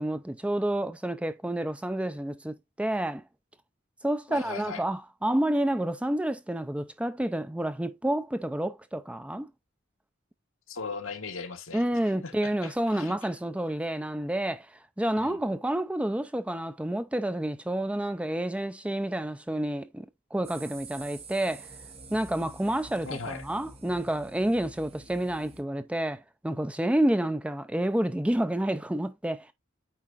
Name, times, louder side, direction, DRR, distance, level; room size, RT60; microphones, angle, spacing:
voice 1, 0.0-3.2 4.0-9.5 11.7-14.7 15.0-20.1 20.3-21.7 22.1-29.5, right 1 dB, 5° right, 0.4 m, -29 dB
voice 2, 4.3-4.8 10.7-11.9 12.2-13.1 15.2-15.4 23.0-23.4, left 5 dB, 75° left, 1.2 m, -38 dB
sound 1, 20.4-25.6, right 3 dB, 30° right, 1.1 m, -48 dB
8.6 x 4.6 x 2.5 m
head